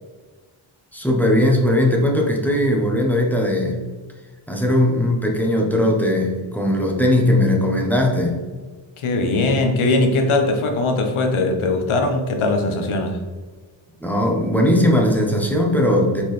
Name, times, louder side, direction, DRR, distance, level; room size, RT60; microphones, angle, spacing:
voice 1, 0.9-3.8 4.5-8.4 14.0-16.3, left 1 dB, 5° left, 0 dB, 0.7 m, -19 dB
voice 2, 9.0-13.2, left 2 dB, 75° left, 4 dB, 0.9 m, -20 dB
4.4 x 3.8 x 3.2 m, 1.4 s
wide cardioid pair, 115°, 50 cm